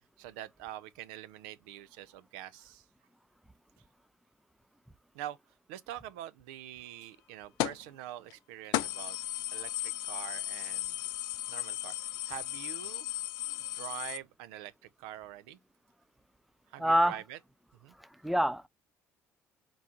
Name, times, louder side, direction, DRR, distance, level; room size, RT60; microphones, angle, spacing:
voice 1, 0.2-2.8 5.1-5.4 5.7-9.2 9.5-11.0 11.5-12.0 12.3-13.1 13.7-15.6 16.7-17.4 17.8-17.9, right 13 dB, 85° right, 0.4 m, -45 dB
sound 1, 7.6-7.9 8.3-8.4 8.7-14.2, left 16 dB, 75° left, 0.4 m, -35 dB
voice 2, 16.8-17.2 18.0-18.7, equal, ahead, 0.5 m, -27 dB
3.8 x 2.4 x 4.2 m
supercardioid pair, 70°, 7 cm